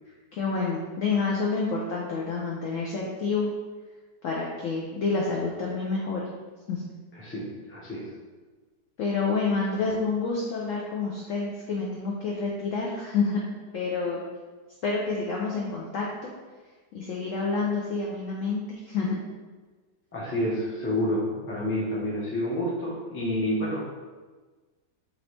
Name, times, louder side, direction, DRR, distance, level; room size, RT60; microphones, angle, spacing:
voice 1, 0.3-3.5 4.2-6.2 6.7-6.8 9.0-13.4 13.7-14.3 14.8-16.3 16.9-19.1, left 4 dB, 70° left, -3 dB, 0.7 m, -28 dB
voice 2, 7.1-8.1 20.1-23.9, left 1 dB, 15° left, -6 dB, 0.5 m, -29 dB
4.0 x 2.9 x 3.2 m, 1.3 s
omnidirectional pair, 1.9 m